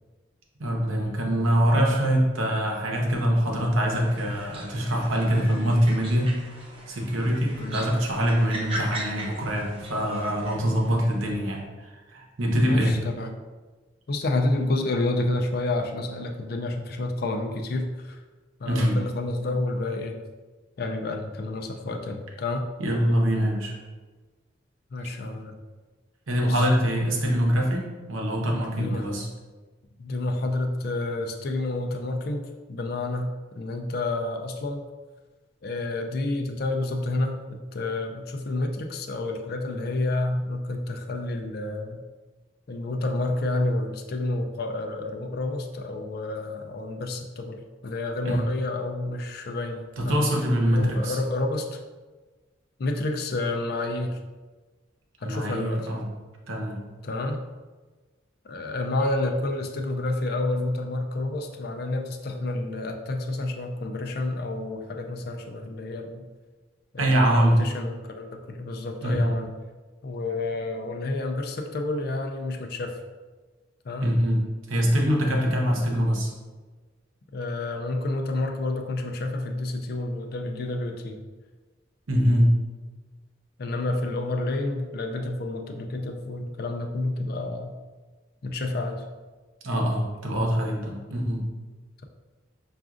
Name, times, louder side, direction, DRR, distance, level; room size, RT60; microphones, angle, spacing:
voice 1, 0.6-6.3 6.9-12.9 18.6-19.0 22.8-23.8 25.0-25.1 26.3-29.3 48.2-48.4 50.0-51.2 55.2-56.0 56.5-56.8 67.0-67.6 69.0-69.4 74.0-74.4 74.7-76.3 82.1-82.5 89.6-91.4, equal, 85° right, -1 dB, 0.8 m, -24 dB
sound 1, 3.9-11.4, right 1 dB, 30° right, 0.6 m, -40 dB
voice 2, 12.6-13.3 14.1-18.2 18.6-20.2 20.8-22.7 24.9-25.6 26.4-26.7 27.2-27.3 28.8-29.0 30.0-33.3 33.6-34.9 35.6-42.0 42.7-50.2 50.7-51.8 52.8-54.2 55.2-55.8 57.0-57.4 58.4-66.2 66.9-69.5 70.0-73.0 73.8-74.1 77.3-81.2 83.6-87.7 88.4-89.0, left 2 dB, 50° left, 4 dB, 0.4 m, -29 dB
5.8 x 2.4 x 2.4 m, 1.3 s
head